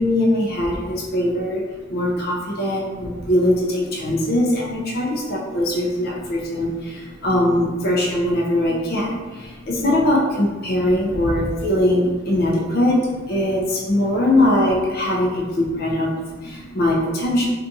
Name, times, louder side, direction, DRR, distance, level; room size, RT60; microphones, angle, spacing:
voice 1, 0.0-17.5, left 1 dB, 50° left, -2 dB, 0.4 m, -21 dB
2.6 x 2.3 x 2.6 m, 1.3 s
head